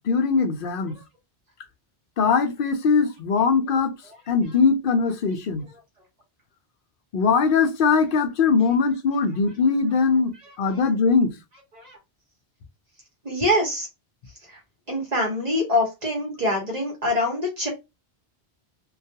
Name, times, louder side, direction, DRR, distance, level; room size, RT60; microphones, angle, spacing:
voice 1, 0.1-0.9 2.2-3.9 4.3-5.7 7.1-10.3 10.6-11.3, left 5 dB, 65° left, 0.7 m, -21 dB
voice 2, 10.4-10.8 11.7-12.0 13.2-13.9 14.5-14.6 14.9-17.7, left 1 dB, 40° right, 1.0 m, -25 dB
2.3 x 2.2 x 2.7 m
omnidirectional pair, 1.1 m